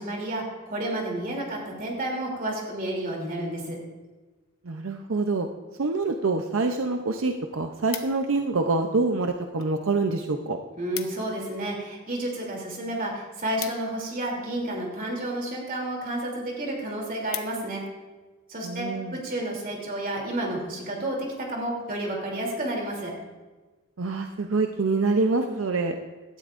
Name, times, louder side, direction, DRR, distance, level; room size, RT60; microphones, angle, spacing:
voice 1, 0.0-3.8 10.8-17.8 18.5-23.1, right 1 dB, 45° right, -1 dB, 3.0 m, -31 dB
voice 2, 4.6-5.5 5.8-10.6 18.6-19.2 24.0-26.0, right 3 dB, 80° right, 5 dB, 0.7 m, -26 dB
sound 1, 7.5-8.5 9.2-9.7 10.0-10.2 10.4-10.5 10.7-11.4 11.7-14.6 15.3-15.6 16.1-16.2 16.6-16.7 16.9-17.9 18.4-18.6, left 12 dB, 85° left, 0.8 m, -40 dB
17.5 x 12.5 x 2.6 m, 1.2 s
head